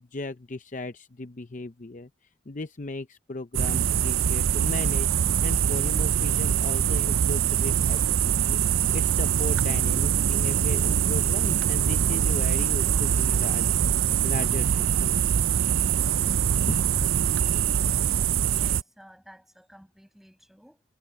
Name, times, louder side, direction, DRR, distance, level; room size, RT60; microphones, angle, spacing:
voice 1, 0.0-2.1 2.5-16.3 16.6-17.3, left 2 dB, 40° left, 0.6 m, -37 dB
sound 1, 3.5-18.8, right 8 dB, 85° right, 0.5 m, -23 dB
sound 2, 13.2-18.3, left 2 dB, 80° left, 7.0 m, -56 dB
voice 2, 18.4-20.8, equal, ahead, 6.8 m, -52 dB
head